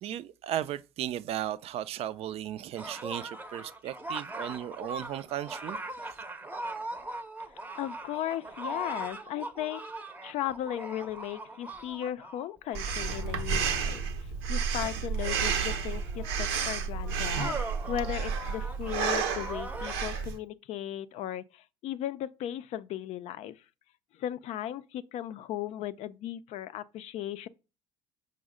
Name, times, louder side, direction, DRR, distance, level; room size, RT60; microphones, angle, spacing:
voice 1, 0.0-5.8, right 11 dB, 55° right, 0.4 m, -35 dB
sound 1, 2.8-13.6 14.4-14.5 15.1-19.9, right 2 dB, 15° right, 0.6 m, -41 dB
voice 2, 7.8-14.0 14.5-17.6 17.9-23.6 24.2-27.5, left 12 dB, 60° left, 0.4 m, -36 dB
Breathing, 12.7-20.4, right 6 dB, 90° right, 0.7 m, -31 dB
5.4 x 2.0 x 4.9 m
supercardioid pair, 80°, 13 cm